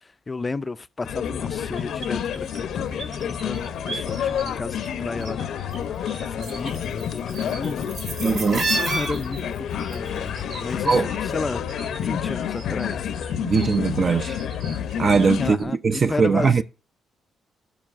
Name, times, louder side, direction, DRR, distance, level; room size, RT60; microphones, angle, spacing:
voice 1, 0.0-5.4 6.2-8.3 8.7-10.3 10.6-11.0 11.3-11.6 12.0-13.1 15.4-16.6, left 3 dB, 25° left, 0.4 m, -33 dB
sound 1, 1.0-15.5, left 8 dB, 75° left, 0.6 m, -29 dB
sound 2, 1.8-4.5 4.8-5.8 6.0-12.0 12.3-15.3 15.6-15.7, right 3 dB, 70° right, 2.2 m, -34 dB
voice 2, 8.2-8.7 10.8-11.1 13.4-14.4 15.0-16.6, right 5 dB, 40° right, 0.4 m, -21 dB
13.5 x 5.4 x 2.4 m
cardioid pair, 90°, 0 cm